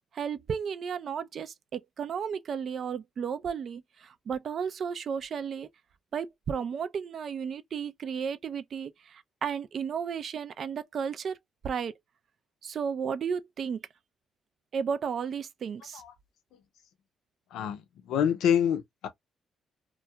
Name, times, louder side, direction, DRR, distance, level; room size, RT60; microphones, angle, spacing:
voice 1, 0.1-5.7 6.1-11.4 11.6-11.9 12.6-13.8 14.7-16.0, right 7 dB, 55° right, 0.4 m, -33 dB
voice 2, 17.5-19.1, left 9 dB, 85° left, 0.5 m, -27 dB
2.3 x 2.2 x 2.7 m
cardioid pair, 90°, 0 cm